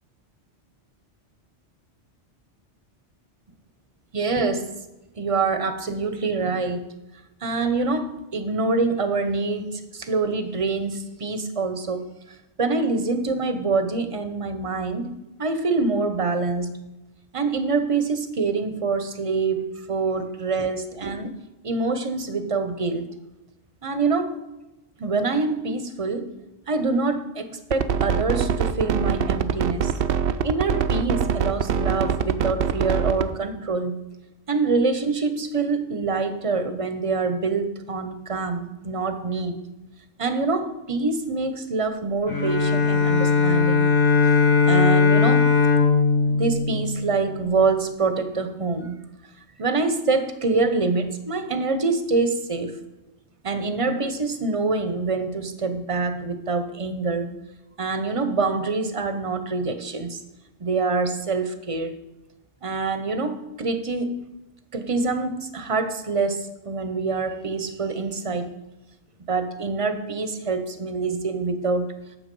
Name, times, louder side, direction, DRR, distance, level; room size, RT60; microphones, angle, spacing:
voice 1, 4.1-4.7 5.1-6.9 7.4-12.1 12.6-15.1 15.4-16.8 17.3-21.4 21.6-23.1 23.8-24.3 25.0-26.3 26.7-29.9 30.4-34.0 34.5-39.6 40.2-44.0 44.2-45.5 46.3-49.0 49.6-52.8 53.4-57.3 57.8-60.2 60.6-62.0 62.6-64.2 64.7-68.5 69.3-71.9, right 3 dB, 30° right, 9 dB, 0.8 m, -25 dB
sound 1, 27.7-33.3, right 7 dB, 65° right, 0.7 m, -23 dB
Bowed string instrument, 42.3-47.5, left 5 dB, 65° left, 2.2 m, -19 dB
9.4 x 7.0 x 5.3 m, 0.99 s
omnidirectional pair, 1.2 m